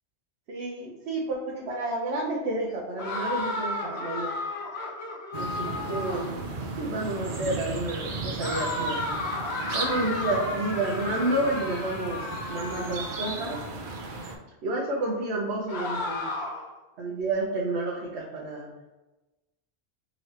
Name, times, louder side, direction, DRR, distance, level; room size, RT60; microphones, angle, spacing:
voice 1, 0.5-4.3 5.4-6.3 6.8-9.0 9.7-13.6 14.6-16.3 17.0-18.7, right 2 dB, 80° right, -3 dB, 1.0 m, -30 dB
sound 1, 3.0-6.4 8.4-13.7 15.7-16.7, left 2 dB, 75° left, 1.1 m, -33 dB
sound 2, 5.3-14.3, right 3 dB, 60° right, 0.7 m, -35 dB
3.8 x 2.9 x 3.2 m, 1.1 s
omnidirectional pair, 1.1 m